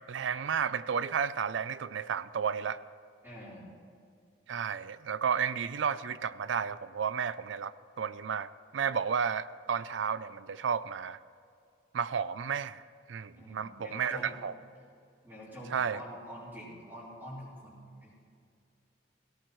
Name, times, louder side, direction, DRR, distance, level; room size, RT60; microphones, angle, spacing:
voice 1, 0.1-2.8 4.5-11.2 11.9-12.8 13.1-14.5 15.7-16.0, right 7 dB, 85° right, 16 dB, 0.4 m, -32 dB
voice 2, 3.2-3.6 13.4-14.4 15.2-18.1, equal, 10° right, -11 dB, 4.0 m, -46 dB
17.5 x 17.5 x 3.1 m, 2.3 s
head